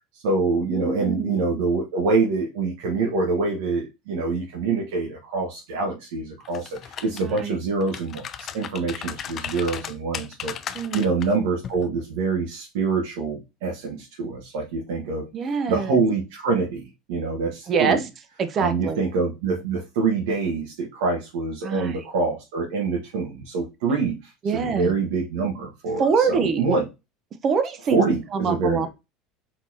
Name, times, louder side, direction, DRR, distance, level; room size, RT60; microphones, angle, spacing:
voice 1, 0.1-15.3 15.7-18.0 18.6-26.9 27.9-28.9, right 4 dB, 85° right, 1.3 m, -25 dB
voice 2, 0.7-1.5 7.3-7.6 10.7-11.2 15.3-16.0 17.7-18.0 18.4-19.0 21.6-22.0 24.4-25.0 26.0-26.7 27.4-28.0 28.3-28.9, right 5 dB, 35° right, 0.8 m, -24 dB
sound 1, 6.4-7.4 7.8-11.3 11.6-11.8, left 8 dB, 35° left, 0.5 m, -35 dB
4.3 x 4.1 x 2.8 m
supercardioid pair, 125°, 0 cm